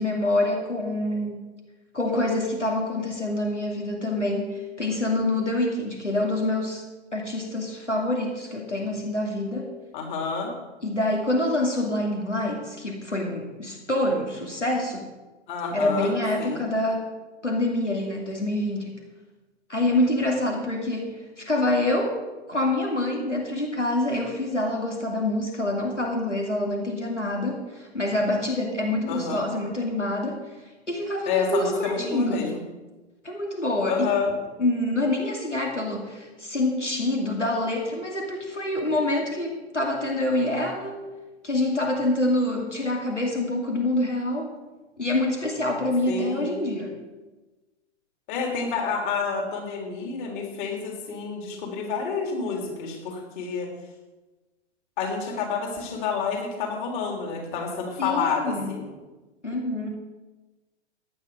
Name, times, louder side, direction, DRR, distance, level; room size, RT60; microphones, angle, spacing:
voice 1, 0.0-1.4 1.9-6.8 7.1-9.8 10.8-15.1 15.7-17.1 17.4-19.0 19.7-22.2 22.5-30.5 30.9-32.5 33.2-34.1 34.6-41.1 41.4-44.5 45.0-47.0 58.0-58.8 59.4-59.9, left 1 dB, 90° left, 0 dB, 2.6 m, -26 dB
voice 2, 9.9-10.5 15.5-16.1 16.4-16.7 29.1-29.5 31.2-32.5 33.8-34.3 46.0-46.5 48.3-53.7 55.0-58.9, left 5 dB, 45° left, 2 dB, 3.5 m, -29 dB
16.5 x 10.5 x 5.1 m, 1.2 s
figure-of-eight pair, 105°, 35 cm